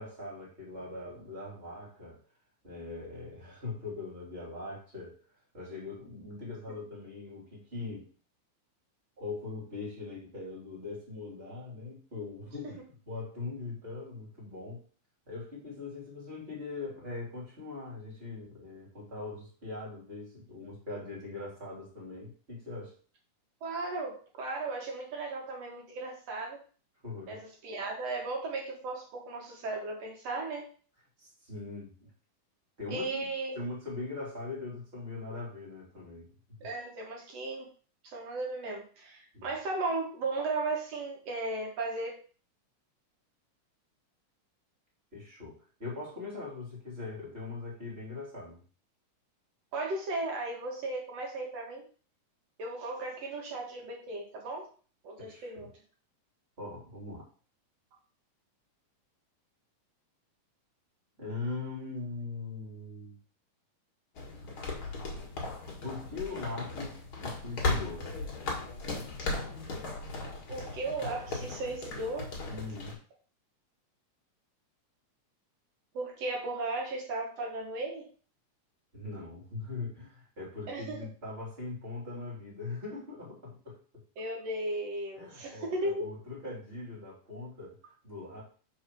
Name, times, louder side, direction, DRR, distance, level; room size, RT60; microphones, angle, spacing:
voice 1, 0.0-2.2 2.6-5.2 5.5-8.1 9.2-14.8 15.3-22.9 27.0-27.4 31.2-32.1 32.8-36.3 36.6-36.7 39.3-39.6 45.1-48.6 55.2-55.7 56.6-57.3 61.2-63.2 65.8-68.1 72.5-73.0 78.9-84.0 85.2-87.8 88.0-88.4, left 3 dB, 20° right, -5 dB, 3.2 m, -41 dB
voice 2, 23.6-26.6 27.3-30.7 32.9-33.6 36.6-37.7 38.0-42.1 49.7-51.8 52.6-54.7 55.0-55.7 70.5-72.3 75.9-78.1 80.7-81.0 84.2-86.0, right 2 dB, 60° right, -1 dB, 2.5 m, -36 dB
sound 1, 64.2-72.9, left 3 dB, 45° left, 2.3 m, -37 dB
5.3 x 4.8 x 6.2 m, 0.40 s
omnidirectional pair, 3.6 m